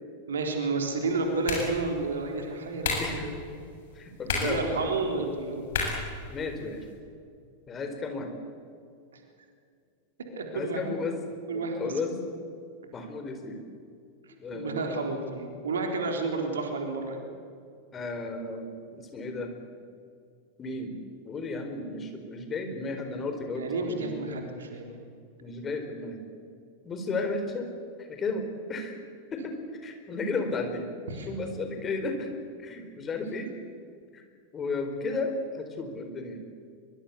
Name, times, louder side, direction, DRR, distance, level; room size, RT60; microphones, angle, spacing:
voice 1, 0.3-3.4 4.3-5.6 9.1-9.2 10.4-10.8 11.5-11.9 14.2-17.3 23.5-25.0 31.1-31.3, right 3 dB, 65° right, 3 dB, 3.8 m, -31 dB
sound 1, 0.9-6.9, left 4 dB, 55° left, 7.8 m, -35 dB
voice 2, 3.0-3.3 3.9-4.9 6.3-6.9 7.7-8.3 10.5-11.2 11.5-12.1 12.9-13.6 14.4-14.9 17.9-19.5 20.6-21.0 21.2-24.4 25.4-26.2 26.8-27.7 28.0-29.0 29.3-29.6 29.8-30.9 31.3-32.3 32.6-33.5 34.1-34.2 34.5-36.4, left 3 dB, 25° left, 5 dB, 4.4 m, -34 dB
23.5 x 23.0 x 8.4 m, 2.3 s
figure-of-eight pair, 90°, 0 cm